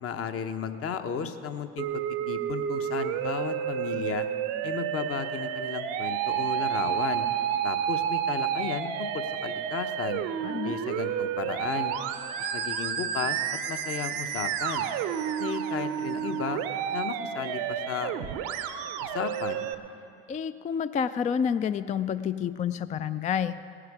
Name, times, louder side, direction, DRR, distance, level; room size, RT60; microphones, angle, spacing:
voice 1, 0.0-4.3 4.6-7.3 7.6-10.2 10.6-12.0 12.4-13.4 13.7-14.9 15.4-16.6 16.9-18.1 19.0-19.7, left 7 dB, 45° left, 8 dB, 1.0 m, -34 dB
Musical instrument, 1.8-19.7, right 9 dB, 70° right, 0.8 m, -30 dB
voice 2, 10.4-10.8 20.3-23.6, left 7 dB, 25° left, 12 dB, 0.3 m, -29 dB
18.0 x 10.0 x 4.9 m, 2.5 s
hypercardioid pair, 70°, 32 cm